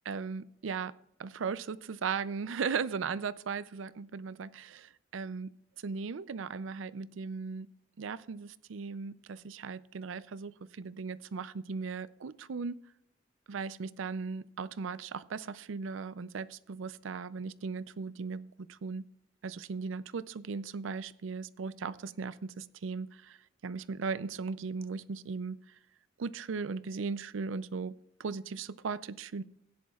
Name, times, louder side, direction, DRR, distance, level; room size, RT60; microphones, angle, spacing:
voice 1, 0.1-0.9 1.2-7.7 8.0-12.8 13.5-19.1 19.4-23.4 23.6-25.6 26.2-29.4, right 5 dB, 90° right, 17 dB, 0.5 m, -37 dB
16.5 x 10.5 x 2.4 m, 0.78 s
head